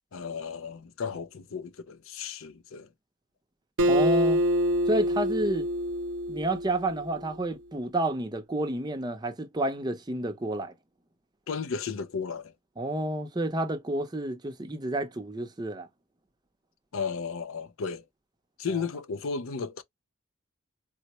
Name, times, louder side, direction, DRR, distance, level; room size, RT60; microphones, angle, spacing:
voice 1, 0.1-2.9 11.5-12.5 16.9-18.0 18.6-19.8, left 5 dB, 90° left, 0.5 m, -34 dB
Acoustic guitar, 3.8-7.2, equal, 75° right, 0.7 m, -26 dB
voice 2, 3.9-4.4 4.9-5.7 6.3-10.7 12.8-15.9 18.7-18.8, right 1 dB, 20° right, 0.6 m, -30 dB
4.0 x 2.1 x 2.9 m
head